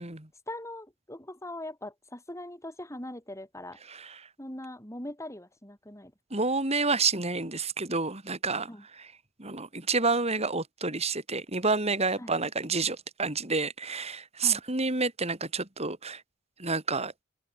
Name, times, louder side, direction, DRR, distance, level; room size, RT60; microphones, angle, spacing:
voice 1, 0.5-3.8 4.4-6.5 8.7-8.8 12.2-12.3 14.4-14.6, left 1 dB, 15° left, 7.6 m, -41 dB
voice 2, 3.9-4.3 6.3-8.7 9.0-9.1 9.4-16.2 16.6-17.1, right 4 dB, 30° right, 4.0 m, -29 dB
open air
head